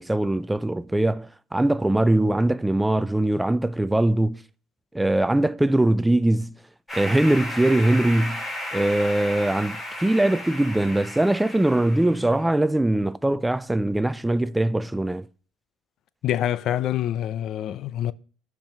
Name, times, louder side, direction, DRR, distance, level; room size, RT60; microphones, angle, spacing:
voice 1, 0.0-4.4 4.9-6.5 6.9-8.4 8.7-15.3, right 1 dB, 10° right, 0.4 m, -22 dB
sound 1, 6.9-12.4, left 1 dB, 15° left, 3.6 m, -34 dB
voice 2, 16.2-18.1, left 11 dB, 60° left, 0.5 m, -26 dB
10.5 x 4.8 x 5.2 m
supercardioid pair, 85°, 0 cm